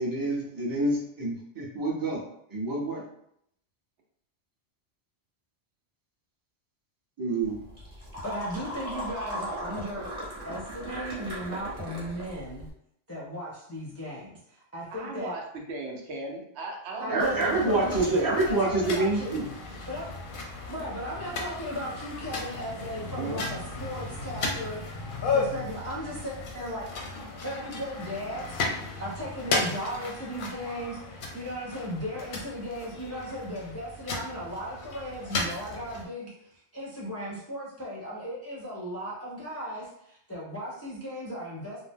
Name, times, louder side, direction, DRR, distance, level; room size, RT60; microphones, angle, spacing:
voice 1, 0.0-2.2 2.5-3.0 7.2-7.6 17.1-19.4, right 2 dB, 25° right, -4 dB, 0.6 m, -27 dB
sound 1, 7.4-12.7, equal, 40° right, 1.0 m, -38 dB
voice 2, 8.2-10.1 10.4-12.7 13.1-14.3 14.7-15.4 17.0-19.5 19.9-20.1 20.7-24.8 25.3-26.8 27.4-28.5 29.0-41.8, equal, 20° left, -6 dB, 0.4 m, -36 dB
voice 3, 14.9-17.9 23.2-23.4, right 3 dB, 75° right, 0 dB, 0.9 m, -36 dB
sound 2, 17.2-36.0, left 3 dB, 60° left, 0.6 m, -35 dB
2.6 x 2.0 x 3.4 m, 0.73 s
omnidirectional pair, 1.1 m